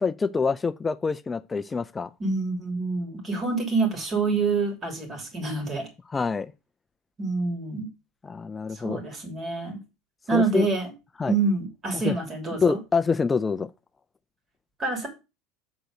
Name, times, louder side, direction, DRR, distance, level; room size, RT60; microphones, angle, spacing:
voice 1, 0.0-2.1 6.1-6.5 8.2-9.0 10.3-10.7 11.2-11.3 11.9-12.1 12.5-13.7, left 5 dB, 15° left, 0.4 m, -26 dB
voice 2, 2.2-5.9 7.2-7.9 8.7-9.8 10.3-10.9 11.3-12.8 14.8-15.1, right 4 dB, 25° right, 2.9 m, -27 dB
8.1 x 3.9 x 6.5 m
supercardioid pair, 150°, 0 cm